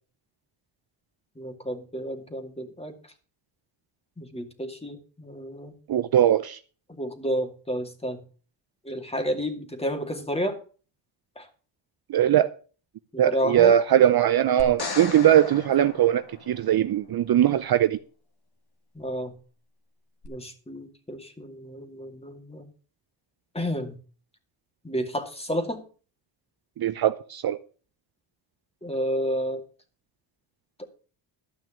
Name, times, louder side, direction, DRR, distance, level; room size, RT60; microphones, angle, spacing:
voice 1, 1.4-2.9 4.2-5.7 7.0-8.2 8.8-10.6 11.4-11.5 13.1-13.7 18.9-19.3 20.2-22.7 23.5-24.0 24.8-25.8 28.8-29.6, equal, 10° left, 2.4 m, -31 dB
voice 2, 5.9-6.6 12.1-12.5 13.2-18.0 26.8-27.6, right 11 dB, 50° right, 0.7 m, -20 dB
sound 1, 14.6-16.9 20.2-20.3, left 4 dB, 50° left, 2.2 m, -36 dB
13.0 x 6.0 x 7.3 m
cardioid pair, 105°, 50 cm